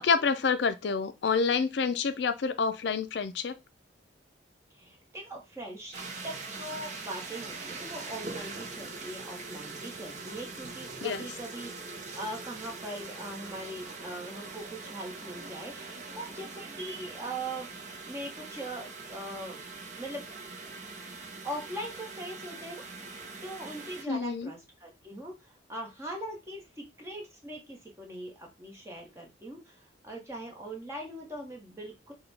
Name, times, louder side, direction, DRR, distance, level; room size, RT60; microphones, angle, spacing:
voice 1, 0.0-3.5 11.0-11.3 24.1-24.5, left 5 dB, 65° left, 0.4 m, -28 dB
voice 2, 4.7-11.7 12.1-17.7 18.0-19.6 20.0-20.3 21.4-32.1, right 1 dB, 15° right, 1.1 m, -41 dB
sound 1, 5.9-24.0, right 3 dB, 40° right, 0.7 m, -42 dB
5.8 x 2.3 x 3.3 m
head